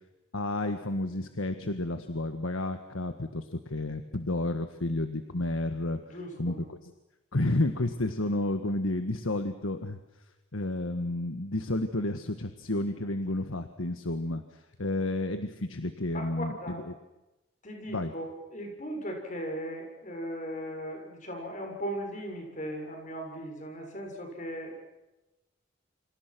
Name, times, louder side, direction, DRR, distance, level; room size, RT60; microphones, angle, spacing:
voice 1, 0.3-6.0 6.4-6.9 7.3-10.0 10.5-16.9 17.9-18.1, left 1 dB, 90° left, 8 dB, 1.6 m, -31 dB
voice 2, 6.1-6.6 16.1-16.8 17.6-24.7, equal, 40° left, 3 dB, 6.9 m, -38 dB
28.5 x 26.5 x 6.2 m, 1.0 s
head